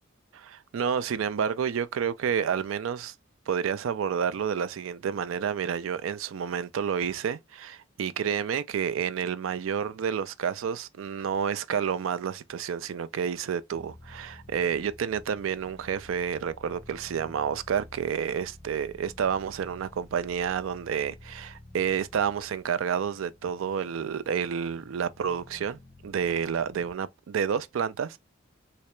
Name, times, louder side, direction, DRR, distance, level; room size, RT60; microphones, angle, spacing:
voice 1, 0.3-3.1 3.5-28.2, right 7 dB, 75° right, 0.4 m, -30 dB
sound 1, 13.7-26.9, left 1 dB, 15° left, 0.4 m, -51 dB
3.2 x 2.8 x 3.0 m
head